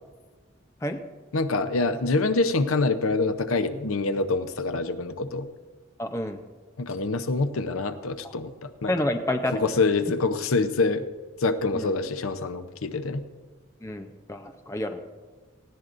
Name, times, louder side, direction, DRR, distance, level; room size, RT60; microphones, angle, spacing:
voice 1, 1.3-5.5 6.8-8.9 9.5-11.0 11.4-13.2, left 3 dB, 80° left, 9 dB, 0.7 m, -25 dB
voice 2, 6.0-6.4 8.2-8.3 8.9-9.8 11.7-12.0 13.8-15.0, left 1 dB, 15° left, 6 dB, 0.6 m, -29 dB
19.0 x 15.0 x 2.6 m, 1.4 s
head